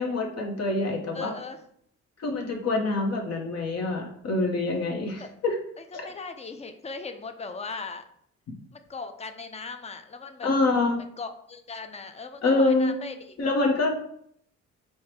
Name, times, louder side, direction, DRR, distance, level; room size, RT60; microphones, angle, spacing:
voice 1, 0.0-1.3 2.2-5.6 5.9-6.1 10.4-11.0 12.4-12.9 13.4-14.0, left 2 dB, 55° left, 2 dB, 1.1 m, -25 dB
voice 2, 1.1-1.6 5.2-5.3 5.8-8.0 8.7-10.5 11.0-13.2, left 4 dB, 20° left, 8 dB, 0.5 m, -38 dB
4.6 x 2.2 x 4.4 m, 0.67 s
cardioid pair, 90°, 30 cm